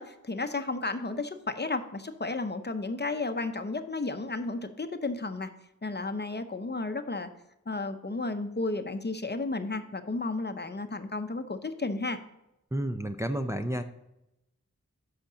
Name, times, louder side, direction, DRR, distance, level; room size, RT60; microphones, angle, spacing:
voice 1, 0.0-5.5 5.8-7.3 7.7-12.2, left 3 dB, 35° left, 8 dB, 0.8 m, -33 dB
voice 2, 12.7-13.8, right 1 dB, 10° right, 6 dB, 0.6 m, -31 dB
8.2 x 5.9 x 5.1 m, 0.88 s
wide cardioid pair, 45°, 31 cm